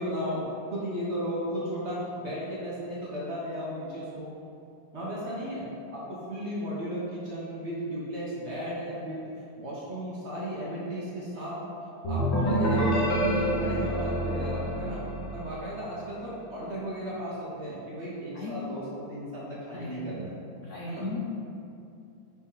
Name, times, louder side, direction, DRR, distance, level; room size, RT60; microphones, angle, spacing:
voice 1, 0.0-4.3 4.9-9.2 9.6-11.6 12.0-15.0 15.3-20.4 20.8-21.0, equal, 45° right, -7 dB, 1.0 m, -35 dB
sound 1, 12.0-15.8, equal, 85° left, 2.0 m, -27 dB
voice 2, 20.6-21.3, left 4 dB, 70° left, -4 dB, 0.7 m, -36 dB
6.1 x 4.2 x 3.8 m, 2.6 s
omnidirectional pair, 2.1 m